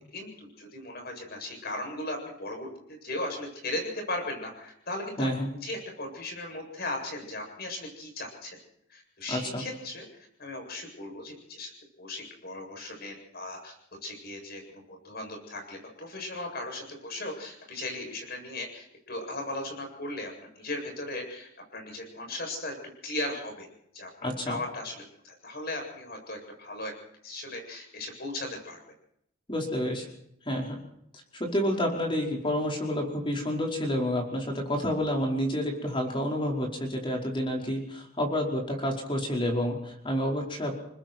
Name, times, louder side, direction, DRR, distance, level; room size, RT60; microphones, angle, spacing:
voice 1, 0.1-5.3 5.6-8.6 8.9-11.7 12.0-13.7 14.0-14.6 14.9-20.3 20.6-22.7 23.0-23.7 23.9-26.9 27.2-28.8, left 1 dB, 45° left, 2 dB, 7.9 m, -37 dB
voice 2, 5.2-5.5 9.3-9.7 24.2-24.6 29.5-30.1 30.5-30.8 31.4-40.7, equal, 25° left, 0 dB, 5.1 m, -29 dB
29.0 x 20.5 x 4.7 m, 0.73 s
head